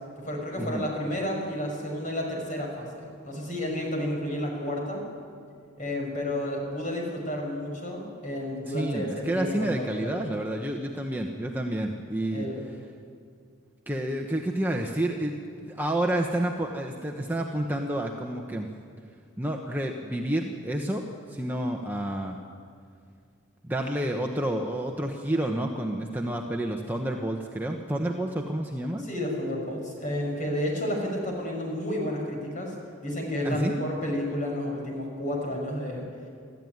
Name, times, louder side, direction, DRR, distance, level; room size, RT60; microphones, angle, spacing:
voice 1, 0.2-5.0 5.8-10.3 12.3-12.6 29.0-32.7 33.0-36.0, left 1 dB, 35° left, 0 dB, 6.0 m, -31 dB
voice 2, 8.7-12.5 13.9-18.7 19.4-22.4 23.6-29.1 33.4-33.8, right 1 dB, 10° right, 1 dB, 1.0 m, -29 dB
25.0 x 14.0 x 9.5 m, 2.2 s
head